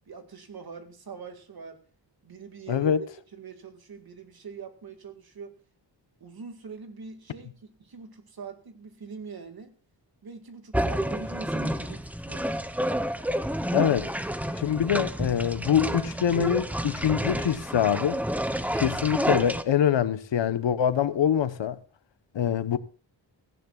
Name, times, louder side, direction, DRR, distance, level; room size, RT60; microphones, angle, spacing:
voice 1, 0.1-1.8 2.2-2.9 3.3-5.5 6.2-9.7 10.2-12.5, right 5 dB, 55° right, 2.1 m, -43 dB
voice 2, 2.7-3.0 13.7-14.1 14.6-18.2 18.7-21.8 22.3-22.8, left 9 dB, 75° left, 1.0 m, -24 dB
sound 1, 10.7-19.6, equal, 5° right, 0.7 m, -29 dB
17.5 x 15.0 x 2.4 m
wide cardioid pair, 165°, 44 cm